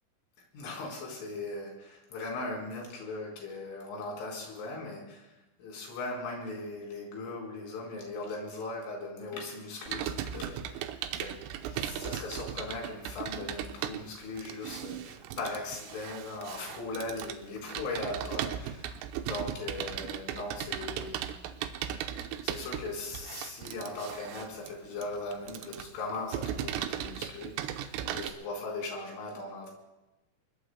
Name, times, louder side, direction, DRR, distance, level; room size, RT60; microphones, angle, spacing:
voice 1, 0.5-11.4 11.7-21.4 22.4-29.7, left 3 dB, 70° left, -1 dB, 6.9 m, -39 dB
Computer keyboard, 9.9-28.3, right 10 dB, 85° right, 3.5 m, -37 dB
29.0 x 21.0 x 2.3 m, 1.0 s
omnidirectional pair, 5.7 m